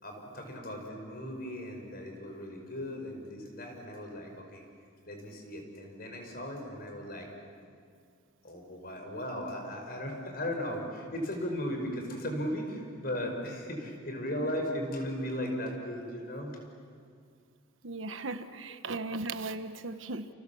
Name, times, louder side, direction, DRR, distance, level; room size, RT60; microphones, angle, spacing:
voice 1, 0.0-4.6 5.1-7.3 8.4-16.6, equal, 50° left, 3 dB, 5.3 m, -37 dB
voice 2, 17.8-20.3, right 3 dB, 80° right, 9 dB, 1.2 m, -37 dB
29.0 x 28.5 x 7.2 m, 2.2 s
head